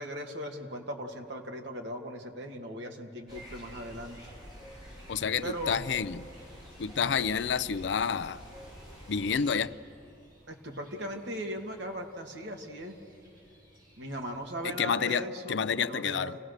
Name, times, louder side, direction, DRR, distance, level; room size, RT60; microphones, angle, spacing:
voice 1, 0.0-4.2 5.4-5.8 10.5-13.0 14.0-16.4, equal, 75° right, 3 dB, 2.0 m, -38 dB
sound 1, 3.3-9.5, equal, 25° right, 7.5 m, -48 dB
voice 2, 5.1-6.3 6.8-8.4 9.1-9.7 14.6-16.4, left 6 dB, 75° left, 16 dB, 0.5 m, -29 dB
sound 2, 5.4-14.7, equal, 50° right, 7.0 m, -59 dB
28.5 x 17.5 x 6.6 m, 2.5 s
head